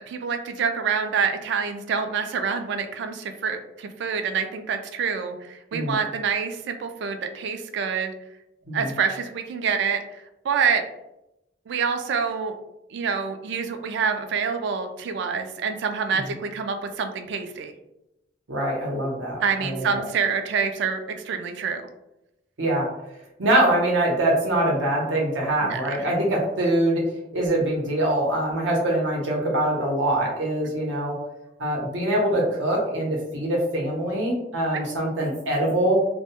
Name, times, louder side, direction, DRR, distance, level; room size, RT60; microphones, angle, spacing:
voice 1, 0.1-8.1 8.7-10.8 11.7-12.5 12.9-17.7 19.4-21.8 25.6-26.1 34.7-35.0, right 6 dB, 65° right, 7 dB, 0.3 m, -27 dB
voice 2, 18.5-20.0 22.6-22.9 23.4-27.1 27.3-31.2 31.6-36.0, right 1 dB, 85° right, -1 dB, 0.7 m, -23 dB
2.1 x 2.1 x 2.8 m, 0.88 s
head